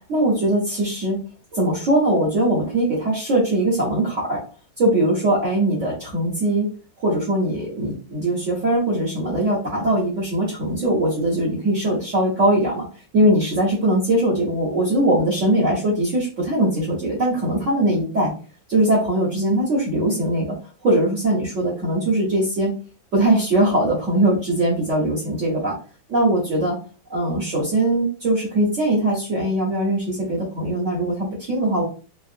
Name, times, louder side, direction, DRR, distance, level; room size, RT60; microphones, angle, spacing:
voice 1, 0.1-1.2 1.5-4.4 4.8-6.7 7.0-12.9 13.1-18.3 18.7-20.5 20.8-22.7 23.1-25.7 26.1-26.8 27.1-31.8, right 1 dB, 55° right, -4 dB, 0.8 m, -21 dB
3.5 x 2.0 x 2.4 m, 0.37 s
omnidirectional pair, 2.2 m